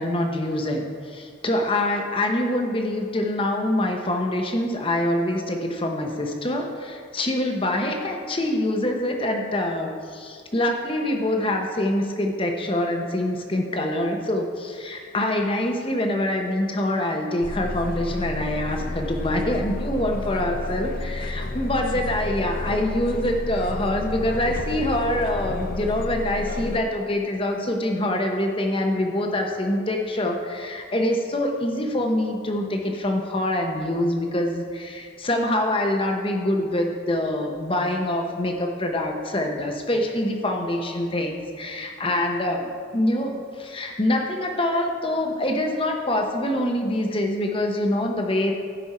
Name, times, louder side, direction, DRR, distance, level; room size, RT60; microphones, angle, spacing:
voice 1, 0.0-48.5, left 1 dB, 25° left, 3 dB, 1.0 m, -25 dB
sound 1, 17.4-26.8, left 2 dB, 45° left, 0.6 m, -31 dB
15.0 x 5.5 x 4.3 m, 2.1 s
head